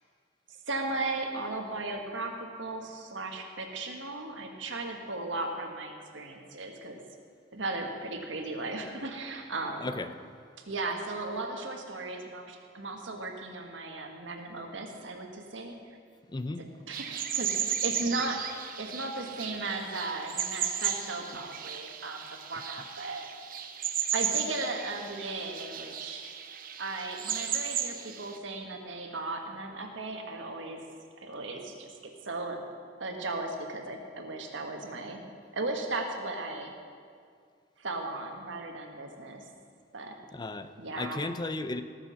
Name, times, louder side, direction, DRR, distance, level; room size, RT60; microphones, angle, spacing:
voice 1, 0.7-7.0 7.5-9.9 10.6-15.8 16.6-18.4 18.8-23.2 24.1-26.4 26.8-30.8 31.2-31.9 32.2-32.6 33.0-35.2 35.5-36.7 37.8-39.4 39.9-40.1 40.8-41.3, right 2 dB, 80° right, 2 dB, 1.6 m, -36 dB
voice 2, 16.3-16.6 40.3-41.8, left 2 dB, 25° left, 11 dB, 0.5 m, -35 dB
sound 1, 16.9-28.4, right 8 dB, 50° right, 0.8 m, -35 dB
18.5 x 7.0 x 5.8 m, 2.2 s
head